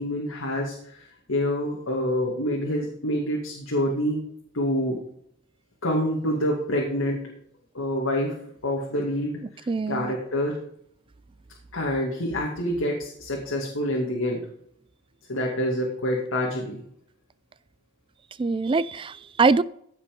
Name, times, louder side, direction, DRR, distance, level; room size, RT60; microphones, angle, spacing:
voice 1, 0.0-4.2 4.5-5.0 5.8-7.3 7.7-8.4 8.6-10.6 11.7-14.4 15.3-16.8, equal, 75° left, 2.4 m, -27 dB
voice 2, 9.7-10.1 18.4-19.6, right 4 dB, 25° right, 0.3 m, -23 dB
15.5 x 5.6 x 5.3 m
head